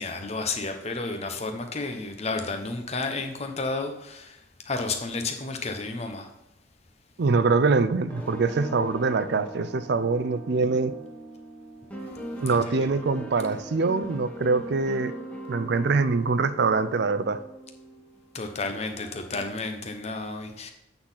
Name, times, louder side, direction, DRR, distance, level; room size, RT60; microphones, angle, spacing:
voice 1, 0.0-4.4 4.7-6.3 12.4-12.6 18.3-20.7, left 3 dB, 35° left, 5 dB, 0.9 m, -31 dB
voice 2, 7.2-10.9 12.4-15.1 15.5-17.4, right 4 dB, 60° right, 12 dB, 0.5 m, -24 dB
sound 1, 8.1-18.4 18.7-19.3, right 1 dB, 5° left, 1.0 m, -40 dB
8.6 x 4.1 x 5.6 m, 0.87 s
head